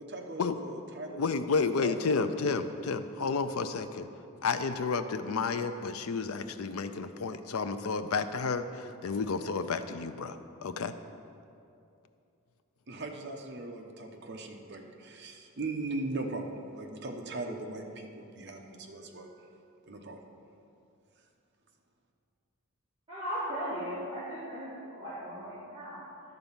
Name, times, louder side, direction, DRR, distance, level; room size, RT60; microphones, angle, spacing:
voice 1, 0.0-1.3 1.7-2.2 12.9-16.5 16.7-19.3 19.9-20.2, right 2 dB, 50° right, 3 dB, 0.8 m, -39 dB
voice 2, 1.2-4.1 4.4-10.9, left 4 dB, 75° left, 10 dB, 0.5 m, -31 dB
voice 3, 23.1-26.0, equal, 25° right, -11 dB, 2.0 m, -37 dB
11.5 x 4.0 x 7.1 m, 2.6 s
head